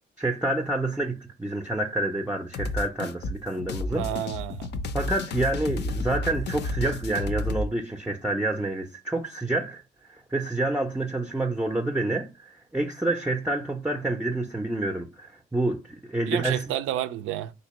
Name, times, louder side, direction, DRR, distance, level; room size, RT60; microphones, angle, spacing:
voice 1, 0.2-4.1 4.9-9.8 10.1-16.6, right 2 dB, 5° right, 0.4 m, -28 dB
sound 1, 2.5-7.7, left 2 dB, 60° left, 0.5 m, -31 dB
voice 2, 3.9-4.7 16.3-17.5, right 12 dB, 90° right, 0.4 m, -30 dB
3.4 x 2.8 x 3.0 m
cardioid pair, 90°, 20 cm